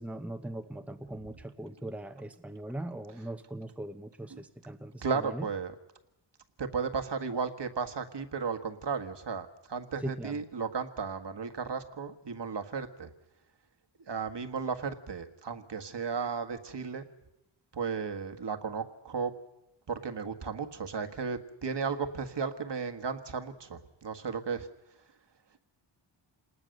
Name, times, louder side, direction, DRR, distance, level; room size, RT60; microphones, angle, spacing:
voice 1, 0.0-5.5 10.0-10.4, right 1 dB, 5° right, 7 dB, 1.1 m, -40 dB
voice 2, 5.0-5.7 6.6-13.1 14.1-17.1 17.7-19.3 19.9-24.7, right 5 dB, 55° right, 6 dB, 1.7 m, -34 dB
28.0 x 20.0 x 6.6 m, 0.88 s
wide cardioid pair, 115°, 50 cm